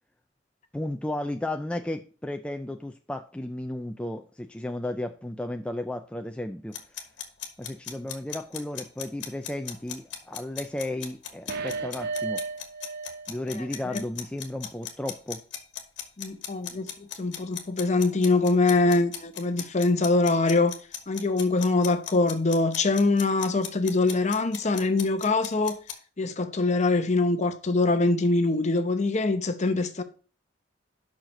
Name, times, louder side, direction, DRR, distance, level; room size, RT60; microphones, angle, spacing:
voice 1, 0.7-6.7 7.6-12.4 13.3-15.4, left 1 dB, 5° left, 0.4 m, -34 dB
sound 1, 6.7-25.9, left 9 dB, 70° left, 1.4 m, -37 dB
sound 2, 11.5-13.3 13.6-13.7, right 4 dB, 60° right, 0.8 m, -33 dB
voice 2, 16.2-20.7 21.1-25.8 26.2-30.0, left 3 dB, 40° left, 0.8 m, -24 dB
5.9 x 4.8 x 6.4 m
head